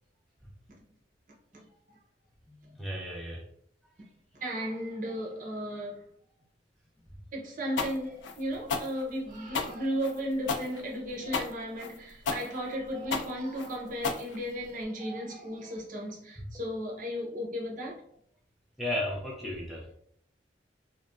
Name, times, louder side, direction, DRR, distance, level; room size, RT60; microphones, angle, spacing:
voice 1, 2.5-3.4 16.4-16.5 18.8-19.9, left 1 dB, ahead, 0.4 m, -35 dB
voice 2, 4.4-6.0 7.3-18.0, equal, 45° right, 0.8 m, -35 dB
sound 1, 7.8-14.8, left 4 dB, 70° left, 0.4 m, -33 dB
3.1 x 2.1 x 2.5 m
head